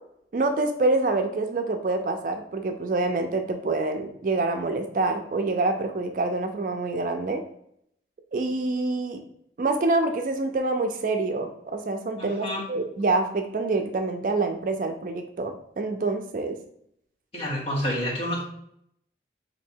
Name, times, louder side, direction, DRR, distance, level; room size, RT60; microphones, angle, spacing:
voice 1, 0.3-7.4 8.3-9.2 9.6-16.6, right 3 dB, 50° right, 5 dB, 0.4 m, -26 dB
voice 2, 17.3-18.4, equal, 35° left, -5 dB, 1.2 m, -28 dB
3.1 x 2.7 x 4.4 m, 0.72 s
head